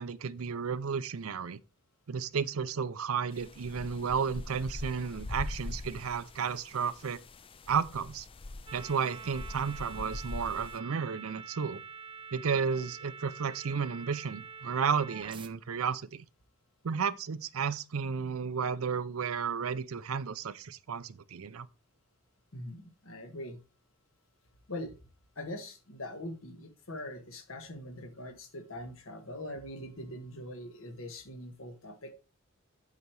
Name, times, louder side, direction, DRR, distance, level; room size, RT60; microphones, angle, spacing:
voice 1, 0.0-1.6 2.1-7.2 7.7-8.3 8.7-11.8 12.3-16.2 16.8-21.7, right 6 dB, 80° right, 0.5 m, -33 dB
sound 1, 3.3-10.8, left 2 dB, 25° left, 0.4 m, -43 dB
sound 2, 8.7-15.5, right 5 dB, 25° right, 0.7 m, -46 dB
voice 2, 22.5-23.6 24.7-24.9 25.3-32.1, left 1 dB, 70° left, 1.6 m, -42 dB
8.3 x 5.0 x 4.6 m
head